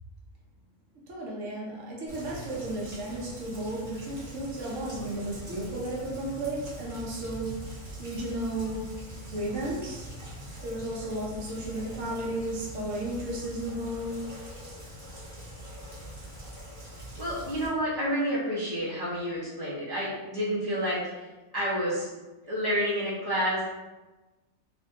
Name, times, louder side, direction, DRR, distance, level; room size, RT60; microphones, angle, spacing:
voice 1, 1.1-7.5 8.0-8.9 9.3-10.1 10.6-14.5, right 1 dB, 70° right, -3 dB, 1.0 m, -34 dB
Rain, 2.1-17.7, equal, 15° right, 0.9 m, -43 dB
voice 2, 17.2-21.3 21.5-22.1 22.5-23.6, equal, 20° left, -10 dB, 0.7 m, -29 dB
3.4 x 2.5 x 2.7 m, 1.1 s
omnidirectional pair, 1.5 m